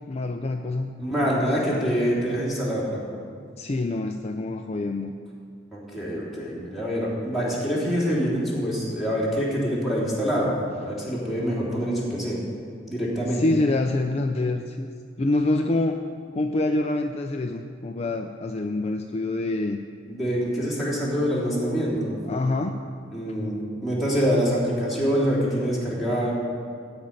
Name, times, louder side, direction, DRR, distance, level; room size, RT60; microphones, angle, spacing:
voice 1, 0.1-0.9 1.2-1.4 1.7-1.9 3.6-5.1 13.3-14.9 15.2-16.0 16.3-19.8 22.3-22.9, left 2 dB, 35° left, 4 dB, 0.5 m, -26 dB
voice 2, 1.0-3.0 5.7-10.5 10.8-12.4 12.9-13.4 20.1-22.2 23.1-26.3, equal, ahead, -8 dB, 3.4 m, -25 dB
14.0 x 5.4 x 8.9 m, 2.2 s
head